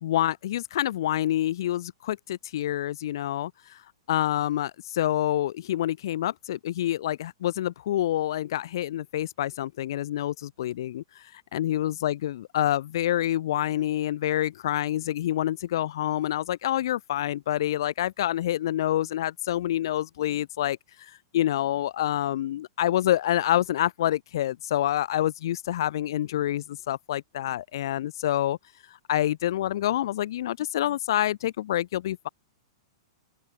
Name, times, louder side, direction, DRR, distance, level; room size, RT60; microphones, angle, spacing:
voice 1, 0.0-3.8 4.1-28.6 29.1-32.3, left 12 dB, 70° left, 0.5 m, -27 dB
open air
hypercardioid pair, 130°, 2 cm